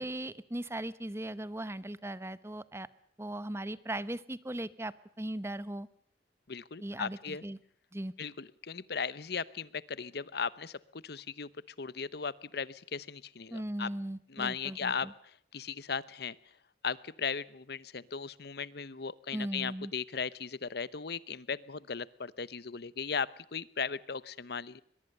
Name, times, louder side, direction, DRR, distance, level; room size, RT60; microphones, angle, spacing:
voice 1, 0.0-2.9 3.2-5.9 6.8-7.6 7.9-8.1 13.5-15.1 19.3-19.9, right 1 dB, 15° right, 16 dB, 0.9 m, -38 dB
voice 2, 6.5-7.4 8.2-11.5 11.8-13.9 14.3-16.4 16.8-24.8, left 6 dB, 60° left, 19 dB, 0.9 m, -37 dB
22.5 x 22.5 x 6.7 m, 0.62 s
head